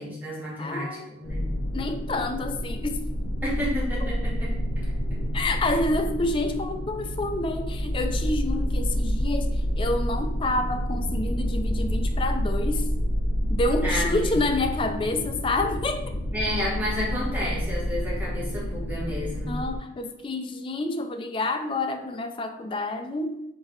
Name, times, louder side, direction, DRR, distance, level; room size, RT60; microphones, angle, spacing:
voice 1, 0.0-1.4 3.4-4.5 4.8-4.9 5.7-5.8 13.8-14.3 16.3-19.5, left 1 dB, 10° right, -7 dB, 1.4 m, -31 dB
voice 2, 0.6-1.1 1.7-3.3 4.0-4.1 5.3-12.9 13.5-16.1 19.5-23.4, left 2 dB, 30° left, 6 dB, 0.4 m, -28 dB
sound 1, 1.2-19.8, equal, 80° left, 0.6 m, -28 dB
4.5 x 3.7 x 3.2 m, 0.87 s
head